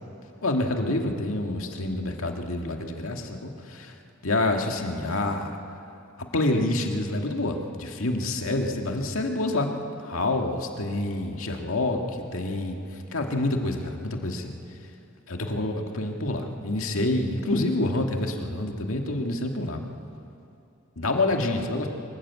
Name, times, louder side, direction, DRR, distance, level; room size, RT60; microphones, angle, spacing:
voice 1, 0.4-3.9 4.2-5.6 6.3-9.7 10.0-12.8 13.1-14.5 15.3-19.8 21.0-21.9, left 2 dB, 85° left, 3 dB, 2.0 m, -27 dB
24.5 x 14.0 x 8.3 m, 2.6 s
head